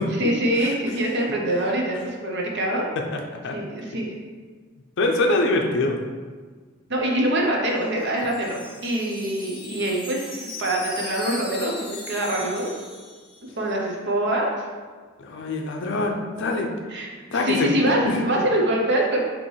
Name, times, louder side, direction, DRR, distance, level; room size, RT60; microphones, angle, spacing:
voice 1, 0.2-2.8 3.5-4.1 6.9-12.7 13.6-14.6 16.9-19.2, right 1 dB, 60° right, -1 dB, 0.8 m, -24 dB
voice 2, 3.1-3.5 5.0-6.0 15.2-16.7 17.3-17.7 18.0-18.2, left 2 dB, 60° left, 2 dB, 0.5 m, -24 dB
Wind chime, 7.7-13.7, left 2 dB, 25° left, 1.1 m, -39 dB
5.3 x 3.0 x 3.2 m, 1.5 s
head